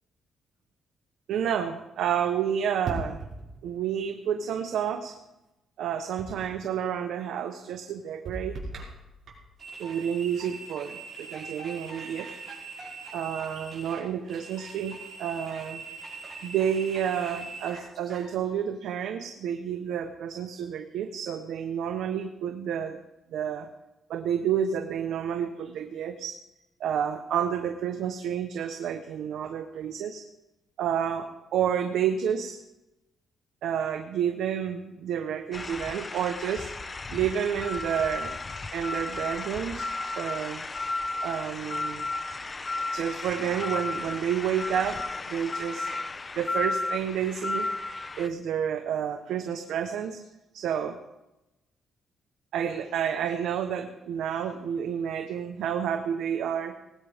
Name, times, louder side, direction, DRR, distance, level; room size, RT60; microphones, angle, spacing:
voice 1, 1.3-3.2 3.6-5.1 5.8-8.6 9.8-12.3 13.1-15.8 16.4-23.0 23.3-23.7 24.1-26.4 26.8-30.2 30.8-32.6 33.6-36.7 37.1-38.4 38.7-39.9 40.1-40.6 41.2-42.1 42.9-45.0 45.3-45.9 46.4-47.7 48.2-50.2 50.5-51.0 52.5-56.7, right 8 dB, 80° right, 6 dB, 1.0 m, -30 dB
sound 1, 2.8-3.9 6.2-6.7 8.3-9.5, right 3 dB, 60° right, 5.6 m, -38 dB
sound 2, 9.6-18.3, right 4 dB, 40° right, 5.9 m, -42 dB
sound 3, 35.5-48.3, left 3 dB, 25° left, 0.8 m, -34 dB
19.0 x 16.0 x 3.6 m, 0.97 s
cardioid pair, 115°, 0 cm